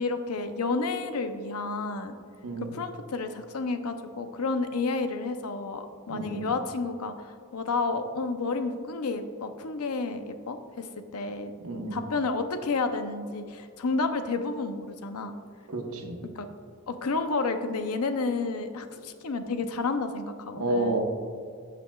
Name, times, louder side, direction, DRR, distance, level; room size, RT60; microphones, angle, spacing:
voice 1, 0.0-2.1 2.6-7.1 7.5-10.9 11.1-11.5 11.9-15.3 16.4-16.5 16.9-21.0, left 3 dB, 90° left, 8 dB, 0.7 m, -30 dB
voice 2, 6.1-6.5 11.6-12.0 15.7-16.2 20.5-21.0, right 2 dB, 80° right, 2 dB, 1.1 m, -30 dB
15.0 x 6.0 x 2.3 m, 2.3 s
head